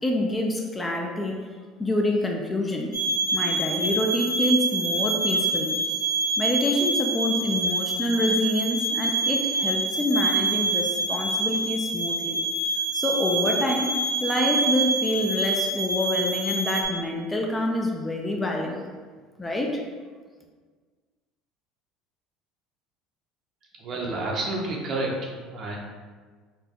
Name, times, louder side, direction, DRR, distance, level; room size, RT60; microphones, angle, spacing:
voice 1, 0.0-1.4 1.8-2.9 3.3-5.7 6.4-12.4 12.9-18.9 19.4-19.8, left 1 dB, 15° left, 1 dB, 0.4 m, -26 dB
sound 1, 2.9-16.8, right 2 dB, 70° left, 1.0 m, -26 dB
voice 2, 23.8-25.8, right 2 dB, 40° right, -2 dB, 0.7 m, -30 dB
4.0 x 2.2 x 3.6 m, 1.5 s
cardioid pair, 130°, 0 cm